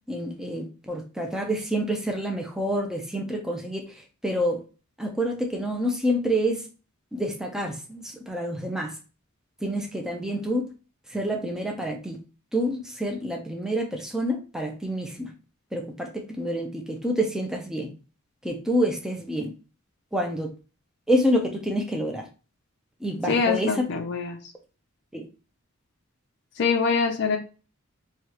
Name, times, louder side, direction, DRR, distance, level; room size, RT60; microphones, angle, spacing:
voice 1, 0.1-3.9 4.2-4.6 5.0-6.7 7.1-8.9 9.6-10.7 11.1-12.2 12.5-15.3 15.7-17.9 18.4-19.5 20.1-20.5 21.1-22.3 23.0-23.9 25.1-25.3, equal, 5° right, 2 dB, 0.5 m, -27 dB
voice 2, 23.3-24.4 26.6-27.4, left 5 dB, 55° left, 1 dB, 0.5 m, -24 dB
4.6 x 2.4 x 2.9 m, 0.34 s
head